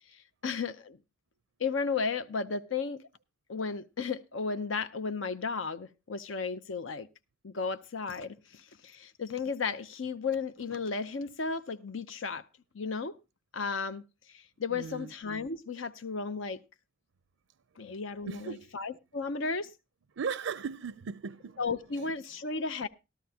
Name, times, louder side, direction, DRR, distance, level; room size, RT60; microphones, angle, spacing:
voice 1, 0.1-1.0 1.6-3.1 3.5-7.1 7.4-12.4 12.7-13.1 13.5-14.0 14.3-16.6 17.8-19.7 21.6-22.9, left 4 dB, 75° left, 0.7 m, -34 dB
voice 2, 14.7-15.1 18.3-18.7 20.2-21.6 22.0-22.1, right 5 dB, 75° right, 0.5 m, -37 dB
14.0 x 13.0 x 2.8 m
head